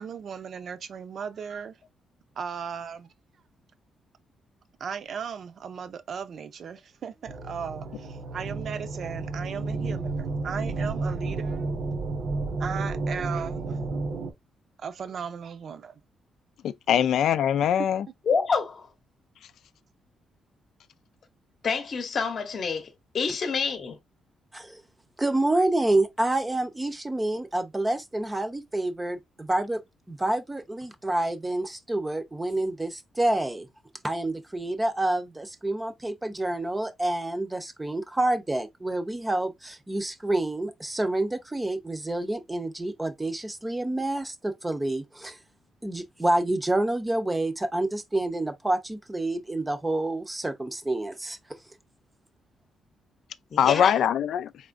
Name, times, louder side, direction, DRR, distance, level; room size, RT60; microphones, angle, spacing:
voice 1, 0.0-1.8 2.4-3.1 4.8-11.6 12.6-13.8 14.8-16.0 17.0-17.1, right 7 dB, 50° right, 0.6 m, -37 dB
sound 1, 7.3-14.3, right 3 dB, 65° right, 1.2 m, -31 dB
voice 2, 16.6-18.1 53.6-54.5, left 9 dB, 70° left, 0.3 m, -22 dB
voice 3, 18.3-18.9 21.6-22.9 23.1-24.0 53.5-54.0, left 5 dB, 40° left, 0.8 m, -27 dB
voice 4, 25.2-29.8 30.1-33.7 34.0-45.4 45.8-51.4, right 1 dB, 10° right, 0.6 m, -28 dB
4.2 x 3.5 x 2.5 m
cardioid pair, 130°, 0 cm